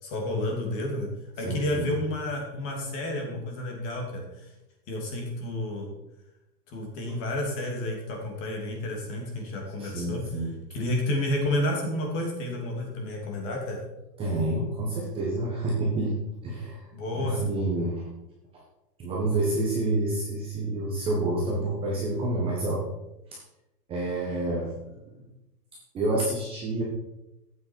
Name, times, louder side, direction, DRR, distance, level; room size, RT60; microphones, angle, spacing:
voice 1, 0.0-1.1 1.4-4.5 4.9-5.9 6.7-10.2 10.7-13.8 16.9-17.4, left 1 dB, 25° left, 0 dB, 2.7 m, -30 dB
voice 2, 1.4-1.9 9.8-10.6 14.2-16.1 16.4-16.9 17.1-18.0 19.0-22.8 23.3-23.4 23.9-25.1 25.9-26.8, right 2 dB, 10° right, -4 dB, 1.3 m, -28 dB
14.0 x 8.8 x 4.6 m, 0.95 s
hypercardioid pair, 170°, 50 cm